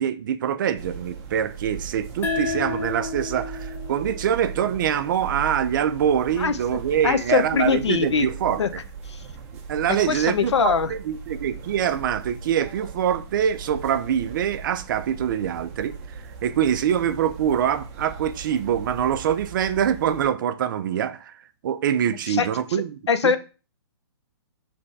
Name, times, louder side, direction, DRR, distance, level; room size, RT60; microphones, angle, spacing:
voice 1, 0.0-8.8 9.7-21.3 21.6-23.3, right 9 dB, 50° right, 0.4 m, -24 dB
sound 1, 0.8-20.3, right 5 dB, 30° right, 0.8 m, -38 dB
sound 2, 2.2-5.4, left 4 dB, 15° left, 0.5 m, -32 dB
voice 2, 6.4-6.8 7.0-8.3 8.6-8.7 9.1-9.2 10.1-10.9 22.3-22.5 23.1-23.4, left 6 dB, 90° left, 0.6 m, -22 dB
3.5 x 3.3 x 4.0 m
hypercardioid pair, 150°, 14 cm